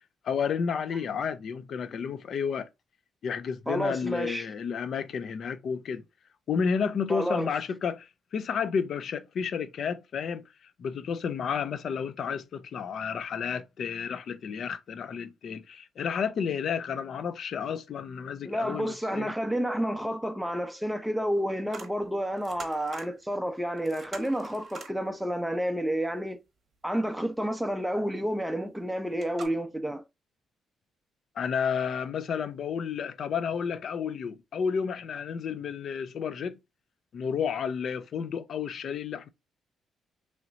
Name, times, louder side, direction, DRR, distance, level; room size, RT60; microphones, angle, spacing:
voice 1, 0.2-2.7 3.2-6.0 6.5-10.4 10.8-19.3 31.4-36.6 37.1-39.3, left 6 dB, 60° left, 0.4 m, -31 dB
voice 2, 3.7-4.5 7.1-7.5 18.4-26.4 26.8-30.0, equal, ahead, 0.5 m, -30 dB
sound 1, 21.7-21.9 22.2-23.1 23.5-23.6 23.8-25.0 28.7-28.8 29.2-29.5, right 4 dB, 45° right, 0.8 m, -44 dB
3.1 x 2.9 x 2.5 m
cardioid pair, 90°, 0 cm